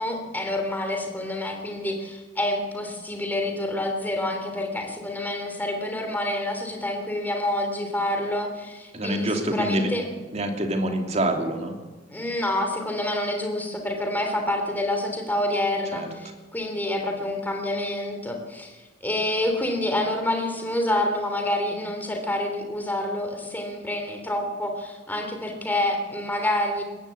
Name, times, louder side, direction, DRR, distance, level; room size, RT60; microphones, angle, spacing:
voice 1, 0.0-10.0 12.1-18.8 19.0-26.8, left 1 dB, 10° left, 4 dB, 3.2 m, -27 dB
voice 2, 8.9-9.9 10.3-11.8 15.9-16.1, right 1 dB, 35° right, 3 dB, 2.8 m, -26 dB
21.0 x 15.5 x 8.4 m, 1.2 s
head